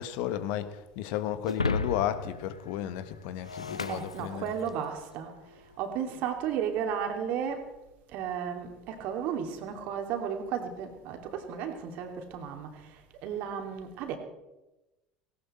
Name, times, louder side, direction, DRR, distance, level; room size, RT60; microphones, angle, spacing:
voice 1, 0.0-4.5, left 11 dB, 60° left, 12 dB, 1.4 m, -33 dB
Shatter, 1.4-4.9, left 3 dB, 85° left, 0.6 m, -35 dB
voice 2, 3.9-7.7 8.1-14.2, right 8 dB, 55° right, 5 dB, 2.8 m, -34 dB
18.0 x 18.0 x 4.4 m, 1.0 s
figure-of-eight pair, 70°, 3 cm